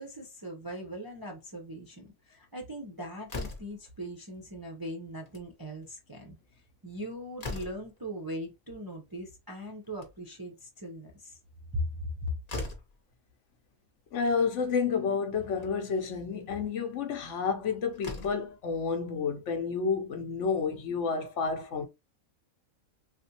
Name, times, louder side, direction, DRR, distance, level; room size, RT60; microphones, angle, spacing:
voice 1, 0.0-6.4 6.8-11.4 11.7-11.9 12.2-12.3, equal, 30° right, 0.4 m, -39 dB
Slam, 3.3-3.9 5.1-5.5 5.8-5.9 6.2-6.3 6.8-8.0 9.7-10.4 12.0-12.1 12.5-13.0 14.1-14.2 14.6-14.7 15.5-15.7 17.4-17.5 17.9-18.5, left 3 dB, 35° left, 0.7 m, -40 dB
voice 2, 14.1-21.8, left 5 dB, 65° left, 0.9 m, -30 dB
3.5 x 2.5 x 2.7 m
omnidirectional pair, 1.4 m